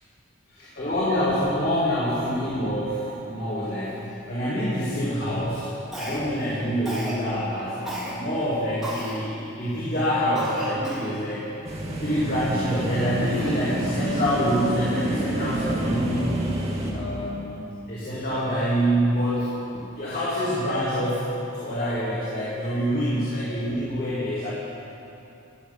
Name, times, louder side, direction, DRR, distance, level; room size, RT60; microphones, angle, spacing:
voice 1, 0.5-11.5 12.0-16.3 16.9-19.5 19.7-24.5, equal, 45° left, -8 dB, 2.8 m, -26 dB
Cough, 5.9-6.4 6.9-7.2 7.9-8.1 8.8-9.2 9.7-9.8 10.4-11.1, right 1 dB, ahead, 4.0 m, -34 dB
sound 1, 11.6-16.9, right 1 dB, 30° right, 2.2 m, -28 dB
14.0 x 8.3 x 9.9 m, 2.9 s
head